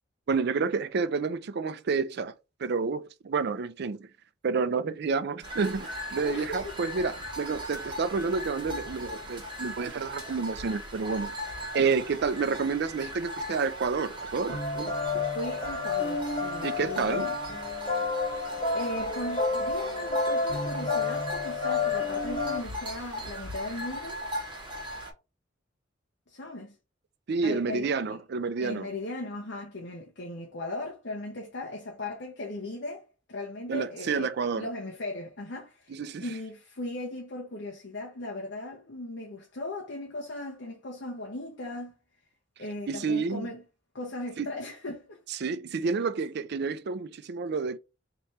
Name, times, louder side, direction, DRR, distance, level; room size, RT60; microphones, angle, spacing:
voice 1, 0.3-2.3 2.6-4.1 4.4-11.3 11.7-14.9 16.6-17.3 27.3-28.9 33.7-34.7 35.9-36.3 42.9-43.5 44.4-44.5 45.4-47.8, right 4 dB, 60° right, 0.4 m, -29 dB
sound 1, 5.4-25.1, equal, 25° right, 1.3 m, -39 dB
voice 2, 6.3-6.8 15.3-17.4 18.7-24.2 26.3-26.7 27.4-28.2 28.6-41.9 42.6-43.6 43.9-45.2, left 2 dB, 65° left, 0.9 m, -38 dB
sound 2, 14.5-22.6, left 4 dB, 30° left, 2.2 m, -30 dB
3.3 x 3.0 x 4.2 m
head